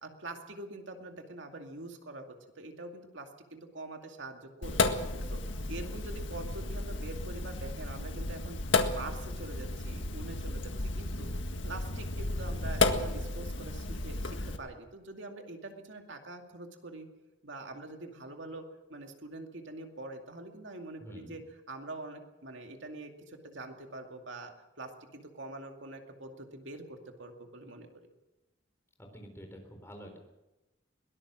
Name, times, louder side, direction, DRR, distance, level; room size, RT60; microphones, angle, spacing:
voice 1, 0.0-4.9 5.3-5.4 5.7-11.3 11.6-17.1 17.4-27.9, right 2 dB, 75° right, 4 dB, 2.3 m, -45 dB
Sink (filling or washing), 4.6-14.6, left 2 dB, 80° left, 1.8 m, -33 dB
voice 2, 21.0-21.4 29.0-30.2, equal, 15° left, 3 dB, 4.0 m, -48 dB
22.5 x 19.0 x 6.3 m, 1.0 s
head